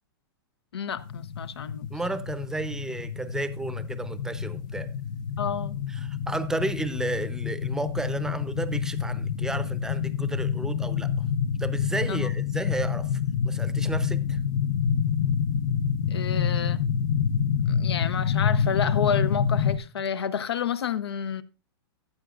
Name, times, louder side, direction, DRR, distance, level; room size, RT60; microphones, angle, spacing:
voice 1, 0.7-1.9 5.4-5.8 12.1-12.3 16.1-16.8 17.7-21.4, left 7 dB, 90° left, 0.7 m, -30 dB
sound 1, 1.0-19.8, left 7 dB, 55° left, 0.7 m, -27 dB
voice 2, 1.9-4.9 5.9-11.1 11.6-14.4, right 2 dB, 5° right, 0.6 m, -32 dB
14.5 x 7.9 x 2.4 m
hypercardioid pair, 135°, 13 cm